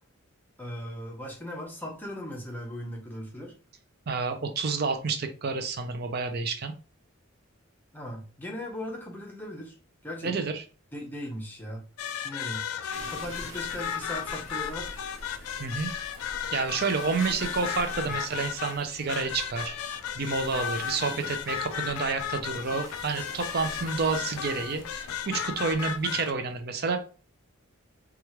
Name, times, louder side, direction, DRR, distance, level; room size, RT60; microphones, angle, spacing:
voice 1, 0.6-3.5 7.9-9.8 10.0-10.4 10.9-11.9 12.2-12.7 13.1-15.0 18.0-18.1 21.0-21.3, equal, 10° left, 0 dB, 0.7 m, -38 dB
voice 2, 4.1-6.7 10.2-10.6 15.6-15.9 16.5-19.8 20.2-27.0, right 4 dB, 45° right, 6 dB, 0.5 m, -29 dB
sound 1, 12.0-26.3, left 8 dB, 85° left, 0.3 m, -35 dB
sound 2, 12.9-26.0, right 1 dB, 65° right, 1.1 m, -46 dB
3.0 x 2.3 x 3.1 m, 0.36 s
head